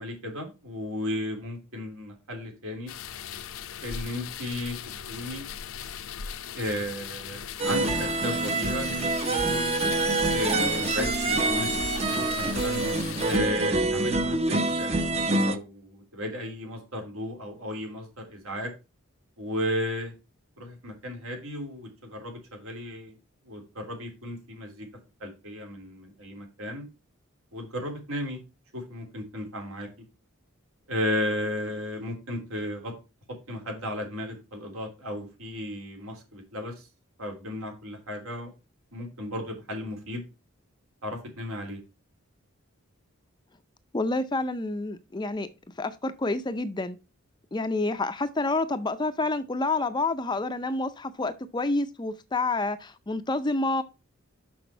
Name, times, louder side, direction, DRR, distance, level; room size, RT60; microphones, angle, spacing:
voice 1, 0.0-2.9 3.8-4.8 5.1-5.4 6.5-9.8 10.3-11.7 12.3-12.9 13.2-15.1 15.4-18.7 19.4-20.1 20.6-23.1 23.4-24.9 25.2-26.9 27.5-28.4 28.7-29.9 30.9-32.9 33.5-36.9 37.2-38.5 38.9-40.2 41.0-41.8, left 1 dB, 75° right, 3.2 m, -34 dB
sound 1, 2.9-13.4, left 8 dB, 70° left, 0.6 m, -38 dB
sound 2, 7.6-15.6, right 2 dB, 30° right, 0.7 m, -26 dB
voice 2, 43.9-45.5 45.8-47.0 47.5-53.8, left 2 dB, 20° left, 0.4 m, -28 dB
6.2 x 6.0 x 4.4 m
head